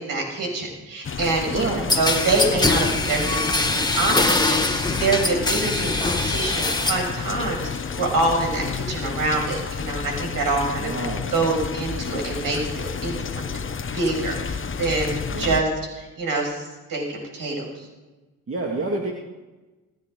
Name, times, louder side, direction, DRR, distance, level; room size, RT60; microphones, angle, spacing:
voice 1, 0.0-1.7 2.0-10.9 11.3-13.7 13.9-15.7 16.0-17.7, right 3 dB, 65° right, 1 dB, 7.0 m, -26 dB
sound 1, 1.0-15.6, left 6 dB, 35° left, 1.1 m, -31 dB
voice 2, 1.4-2.0 10.8-11.3 15.3-15.6 18.5-19.1, right 3 dB, 35° right, -1 dB, 2.5 m, -28 dB
sound 2, 1.9-7.1 7.5-8.1, left 2 dB, 10° left, 2.0 m, -23 dB
29.0 x 10.5 x 4.0 m, 1.1 s
hypercardioid pair, 50°, 36 cm